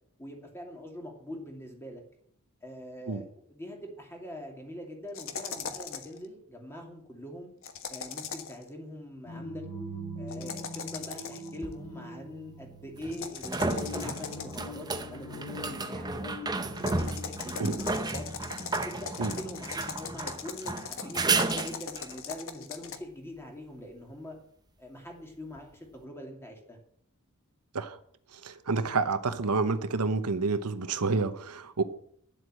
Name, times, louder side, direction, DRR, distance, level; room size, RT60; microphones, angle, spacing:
voice 1, 0.2-2.0 2.6-7.5 7.9-9.6 10.2-16.5 16.9-18.2 18.9-24.4 24.8-26.8, left 1 dB, 10° left, 1 dB, 2.7 m, -43 dB
sound 1, 5.1-6.2 7.6-8.6 10.3-11.6 13.1-14.7 16.8-23.0, left 6 dB, 65° left, 1.3 m, -39 dB
sound 2, 9.3-19.2, left 1 dB, 80° left, 5.8 m, -43 dB
sound 3, 11.6-11.7 13.0-22.1 25.6-25.7, right 3 dB, 20° right, 0.8 m, -33 dB
voice 2, 28.3-31.8, right 4 dB, 85° right, 10 dB, 1.0 m, -29 dB
10.5 x 7.9 x 7.6 m, 0.65 s
head